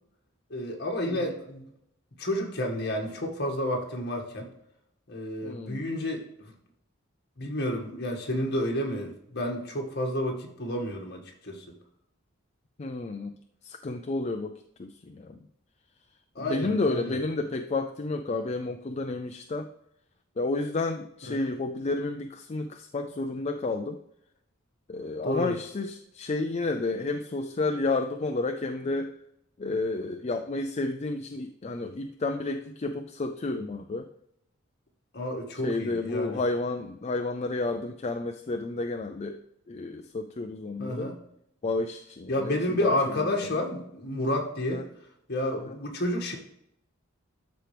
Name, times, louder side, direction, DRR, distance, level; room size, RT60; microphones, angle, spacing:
voice 1, 0.5-1.6 2.2-4.5 5.1-6.5 7.4-11.6 16.4-17.2 21.3-21.5 25.2-25.5 35.1-36.4 40.8-41.1 42.3-44.8 45.3-46.3, left 1 dB, 55° left, 1 dB, 1.9 m, -30 dB
voice 2, 5.4-5.8 12.8-13.3 13.6-14.5 14.8-15.4 16.4-19.7 20.4-24.0 24.9-29.1 29.6-34.1 35.6-39.4 39.7-41.1 41.6-43.3 44.7-44.8 45.6-45.8, left 3 dB, 35° left, 5 dB, 0.4 m, -31 dB
12.5 x 4.5 x 3.4 m, 0.75 s
head